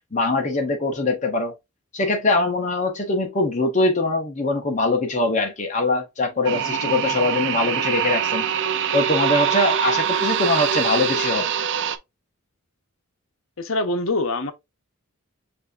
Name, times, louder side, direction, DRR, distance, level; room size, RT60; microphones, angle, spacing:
voice 1, 0.1-1.5 1.9-8.5 8.9-11.5, left 2 dB, 35° left, 0.8 m, -22 dB
sound 1, 6.4-12.0, right 8 dB, 55° right, 0.6 m, -23 dB
voice 2, 13.6-14.5, left 2 dB, 65° left, 0.9 m, -24 dB
7.2 x 2.7 x 2.5 m
head